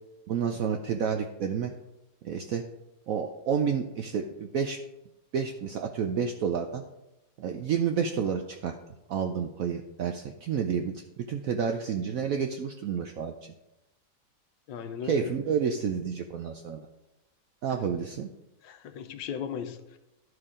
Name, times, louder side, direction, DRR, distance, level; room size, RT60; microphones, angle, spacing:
voice 1, 0.3-1.7 2.2-2.6 3.1-4.8 5.3-6.8 7.4-8.8 9.1-13.5 15.0-16.8 17.6-18.3, right 7 dB, 75° right, 5 dB, 0.8 m, -30 dB
voice 2, 14.7-15.3 18.6-20.0, left 7 dB, 85° left, 8 dB, 1.4 m, -37 dB
12.5 x 4.8 x 3.6 m, 0.95 s
omnidirectional pair, 2.0 m